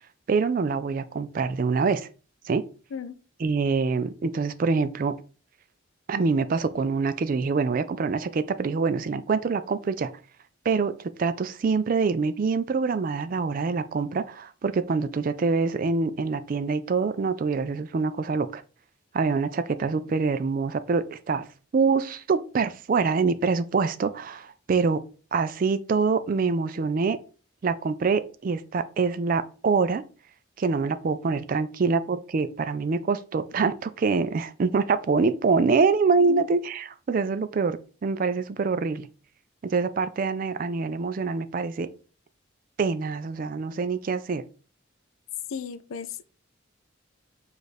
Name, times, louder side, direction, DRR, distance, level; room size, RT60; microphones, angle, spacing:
voice 1, 0.3-2.1 2.4-2.6 3.4-5.1 6.1-10.1 10.6-18.6 19.1-21.5 21.7-25.0 25.3-27.2 27.6-30.0 30.6-39.1 39.6-41.9 42.8-44.4, right 4 dB, 40° right, 0.3 m, -25 dB
voice 2, 45.5-46.2, left 4 dB, 80° left, 0.4 m, -34 dB
5.0 x 2.5 x 4.1 m
head